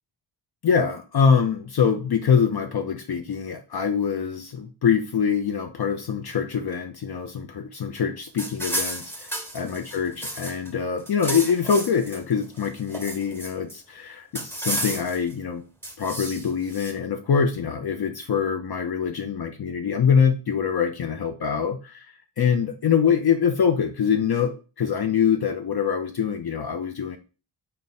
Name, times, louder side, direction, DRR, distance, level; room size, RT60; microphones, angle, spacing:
voice 1, 0.6-15.6 16.0-27.2, left 7 dB, 50° left, 6 dB, 0.6 m, -24 dB
sound 1, 8.4-10.7 11.0-12.2 12.6-13.7 14.3-15.3 15.8-16.9, right 1 dB, 5° left, 1.2 m, -32 dB
3.5 x 2.2 x 4.1 m, 0.34 s
cardioid pair, 40°, 49 cm